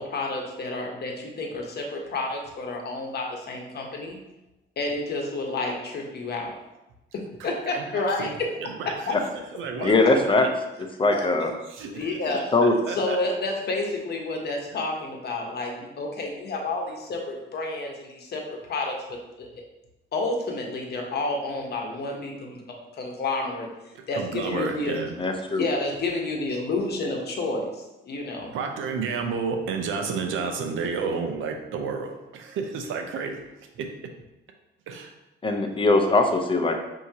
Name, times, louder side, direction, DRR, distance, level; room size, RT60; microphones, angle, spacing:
voice 1, 0.0-4.2 4.8-6.5 7.1-8.5 8.8-9.2 11.1-11.3 11.9-12.5 12.9-19.5 20.1-22.6 23.0-23.7 24.1-25.0 25.6-28.5, left 2 dB, 55° left, 1 dB, 1.0 m, -30 dB
voice 2, 7.4-9.1 9.5-10.5 11.7-12.1 12.6-13.2 23.9-25.1 28.5-33.4 33.8-33.9 34.9-35.1, right 5 dB, 80° right, 4 dB, 0.6 m, -31 dB
voice 3, 9.8-10.5 11.0-11.5 12.5-12.7 24.5-24.6 25.2-25.7 35.4-36.7, left 3 dB, 25° left, 4 dB, 0.6 m, -21 dB
5.6 x 2.8 x 2.8 m, 0.96 s
cardioid pair, 90°, 20 cm